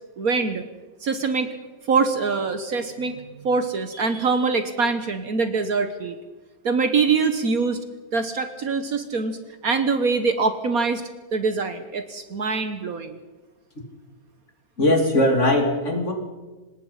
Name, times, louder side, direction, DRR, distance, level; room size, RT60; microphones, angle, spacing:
voice 1, 0.2-0.6 1.0-1.5 1.9-6.1 6.6-7.8 8.1-9.4 9.6-11.0 11.3-13.2, right 4 dB, 55° right, 9 dB, 1.5 m, -24 dB
voice 2, 14.8-16.1, left 1 dB, 40° left, 2 dB, 3.3 m, -20 dB
26.0 x 19.5 x 5.7 m, 1.2 s
omnidirectional pair, 1.9 m